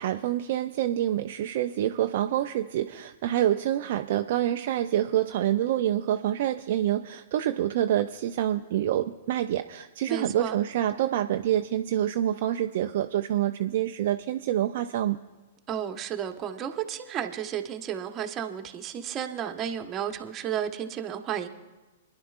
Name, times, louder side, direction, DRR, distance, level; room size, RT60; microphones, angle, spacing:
voice 1, 0.0-15.2, right 12 dB, 55° right, 6 dB, 0.4 m, -27 dB
voice 2, 10.1-10.6 15.7-21.5, right 9 dB, 25° right, 5 dB, 1.0 m, -33 dB
27.5 x 10.5 x 2.4 m, 1.2 s
figure-of-eight pair, 110°, 0 cm